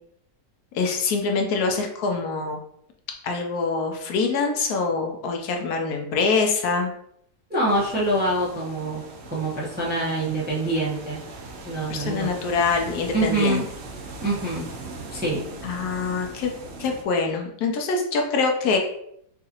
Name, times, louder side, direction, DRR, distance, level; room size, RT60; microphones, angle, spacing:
voice 1, 0.7-2.6 3.2-6.9 11.9-13.7 15.6-16.5 16.8-18.8, left 4 dB, 75° left, 3 dB, 1.0 m, -24 dB
voice 2, 7.5-9.0 9.3-11.2 11.6-12.3 13.1-13.6 14.2-14.6 15.1-15.4, right 1 dB, 10° right, -6 dB, 0.5 m, -25 dB
sound 1, 7.7-17.0, right 3 dB, 65° right, 0.7 m, -40 dB
4.6 x 2.5 x 2.8 m, 0.72 s
omnidirectional pair, 1.8 m